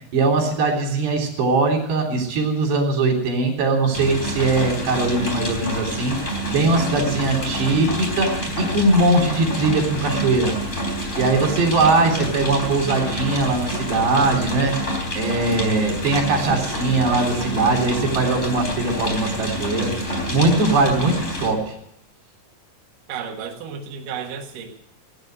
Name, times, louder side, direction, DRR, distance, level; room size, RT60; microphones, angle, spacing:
voice 1, 0.1-10.6 11.2-14.8 15.2-21.7, right 3 dB, 85° right, 1 dB, 5.6 m, -21 dB
sound 1, 3.9-21.5, equal, 20° left, 3.6 m, -28 dB
voice 2, 6.9-7.6 16.5-17.0 19.8-20.3 23.1-24.8, right 7 dB, 60° right, 1 dB, 2.9 m, -35 dB
18.5 x 9.6 x 7.9 m, 0.81 s
omnidirectional pair, 4.8 m